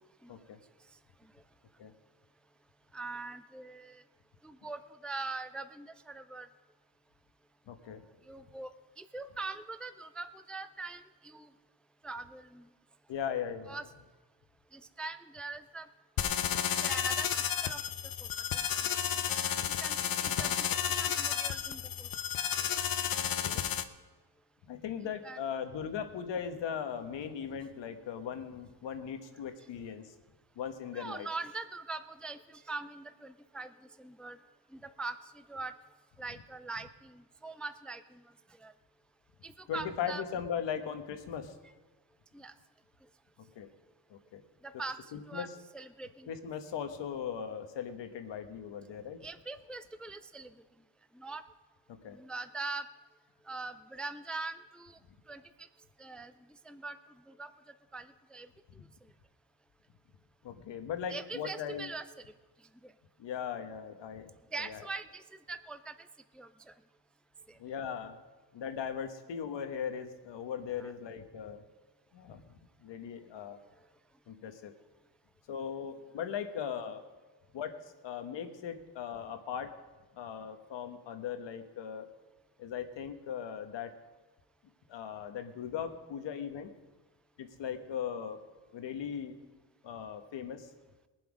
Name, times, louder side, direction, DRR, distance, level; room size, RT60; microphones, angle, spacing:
voice 1, 0.3-0.6 1.8-1.9 7.7-8.0 13.1-13.8 23.2-23.6 24.7-30.1 30.6-31.3 39.7-41.6 43.5-43.7 44.1-44.4 45.1-45.5 46.3-49.2 52.0-52.2 60.4-61.9 63.2-64.9 67.6-68.2 68.5-71.6 72.1-72.4 72.8-73.6 74.3-74.7 75.5-77.0 77.5-79.7 80.1-82.1 82.6-83.9 84.9-86.7 87.4-88.4 88.7-89.4 89.8-90.7, left 8 dB, 75° left, 8 dB, 1.3 m, -39 dB
voice 2, 2.9-4.0 4.4-6.5 8.3-11.5 12.0-12.7 13.7-13.8 14.7-15.9 16.8-17.3 17.6-17.8 18.2-18.9 19.8-22.1 25.2-25.4 30.9-34.4 34.7-35.7 36.2-38.2 38.6-38.7 39.4-40.2 42.3-42.5 44.6-45.0 45.3-45.5 45.7-46.3 49.2-50.5 51.1-51.4 52.1-52.9 53.5-55.0 55.3-55.7 56.0-56.3 56.7-57.0 57.3-57.5 57.9-58.5 61.1-62.1 62.8-62.9 64.5-65.2 65.5-65.9 66.3-66.7 67.5-67.6 70.8-70.9, right 3 dB, ahead, 11 dB, 0.3 m, -42 dB
sound 1, 16.2-23.8, left 9 dB, 50° left, 0.8 m, -32 dB
20.5 x 7.7 x 5.0 m, 1.2 s
cardioid pair, 115°, 44 cm